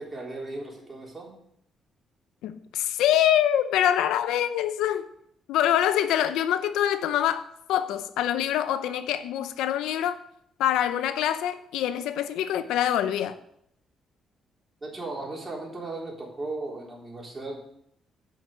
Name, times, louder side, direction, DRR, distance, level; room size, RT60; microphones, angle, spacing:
voice 1, 0.0-1.3 14.8-17.6, right 2 dB, 25° right, 3.6 m, -36 dB
voice 2, 2.4-5.1 5.5-10.2 10.6-13.4, left 11 dB, 90° left, 0.6 m, -25 dB
9.2 x 6.0 x 6.5 m
cardioid pair, 90°, 0 cm